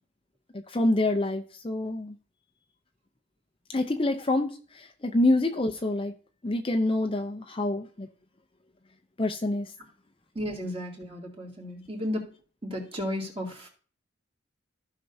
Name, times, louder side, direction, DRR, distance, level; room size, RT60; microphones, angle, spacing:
voice 1, 0.5-2.1 3.7-6.1 6.4-8.1 9.2-9.7, left 2 dB, 25° left, 5 dB, 0.6 m, -27 dB
voice 2, 10.3-12.3 12.6-13.7, left 1 dB, 30° right, -1 dB, 2.6 m, -34 dB
15.0 x 5.9 x 2.7 m, 0.41 s
head